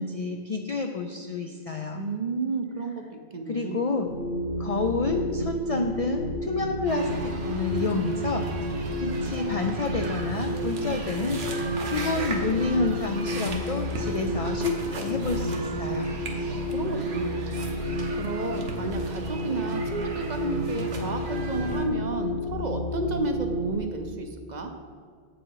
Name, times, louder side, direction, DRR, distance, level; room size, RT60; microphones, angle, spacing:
voice 1, 0.0-2.1 3.5-4.1 4.6-16.1, left 3 dB, 55° left, 4 dB, 0.4 m, -29 dB
voice 2, 1.9-3.8 16.4-17.7 18.2-24.7, right 3 dB, 50° right, 5 dB, 0.7 m, -32 dB
sound 1, 4.0-23.8, equal, 80° left, 1.1 m, -31 dB
sound 2, 6.9-21.9, right 3 dB, 75° right, 1.2 m, -37 dB
8.0 x 6.1 x 4.7 m, 2.1 s
omnidirectional pair, 1.1 m